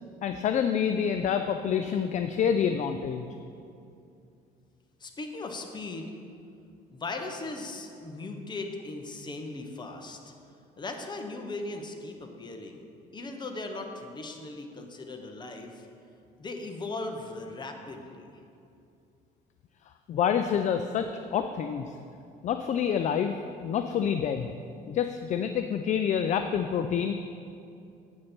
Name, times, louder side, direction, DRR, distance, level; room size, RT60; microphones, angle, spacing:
voice 1, 0.2-3.3 20.1-21.9 22.4-23.4 23.6-24.5 24.9-27.1, left 8 dB, 45° left, 8 dB, 0.4 m, -27 dB
voice 2, 5.0-6.1 6.9-10.3 10.8-12.9 13.1-15.9 16.4-18.3, left 2 dB, 25° left, 4 dB, 0.9 m, -38 dB
8.5 x 6.4 x 4.4 m, 2.6 s
cardioid pair, 110°, 17 cm